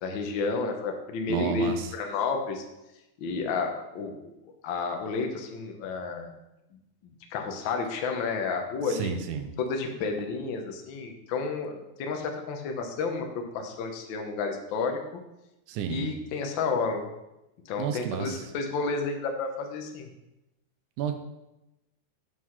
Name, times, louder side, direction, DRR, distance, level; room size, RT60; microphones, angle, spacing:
voice 1, 0.0-2.6 3.2-4.1 4.6-6.4 7.0-9.1 9.6-15.2 15.9-17.1 17.7-20.1, left 4 dB, 75° left, 4 dB, 1.1 m, -31 dB
voice 2, 1.3-1.9 8.9-9.5 15.7-16.1 17.8-18.4 21.0-21.1, right 8 dB, 90° right, 8 dB, 2.2 m, -31 dB
7.9 x 4.8 x 5.7 m, 0.94 s
omnidirectional pair, 3.5 m